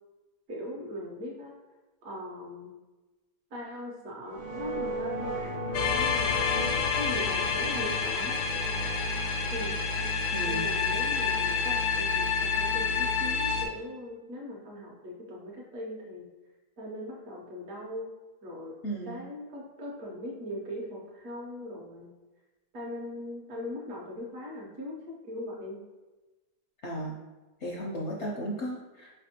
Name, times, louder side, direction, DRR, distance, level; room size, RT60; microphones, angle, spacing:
voice 1, 0.5-1.6 2.0-2.7 3.5-6.4 7.0-8.4 9.5-9.8 10.5-16.3 16.8-18.1 18.4-18.7 19.0-22.1 22.7-25.8, left 1 dB, 65° right, -3 dB, 1.2 m, -40 dB
sound 1, 4.3-12.9, right 1 dB, 45° right, 0.8 m, -38 dB
sound 2, 5.7-13.7, left 5 dB, 90° left, 1.3 m, -28 dB
voice 2, 10.3-10.7 18.8-19.2 26.8-27.2 27.6-29.1, right 1 dB, 65° left, -3 dB, 0.7 m, -35 dB
5.5 x 3.4 x 2.7 m, 1.2 s
omnidirectional pair, 1.8 m